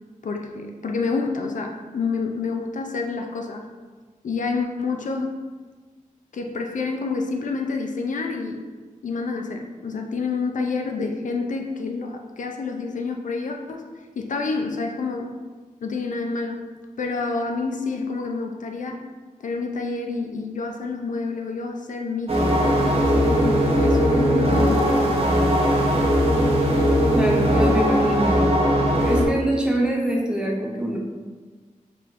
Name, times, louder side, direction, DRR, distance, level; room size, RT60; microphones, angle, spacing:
voice 1, 0.2-3.7 4.2-5.4 6.3-8.7 9.0-13.9 14.2-15.3 15.8-16.6 17.0-19.0 19.4-22.4 22.6-25.1, left 4 dB, 65° left, 3 dB, 0.4 m, -28 dB
sound 1, 22.3-29.2, equal, 45° right, 0.8 m, -19 dB
voice 2, 27.1-28.4 29.0-31.0, right 1 dB, 5° right, -2 dB, 0.6 m, -24 dB
4.7 x 2.8 x 2.5 m, 1.4 s
wide cardioid pair, 115°, 14 cm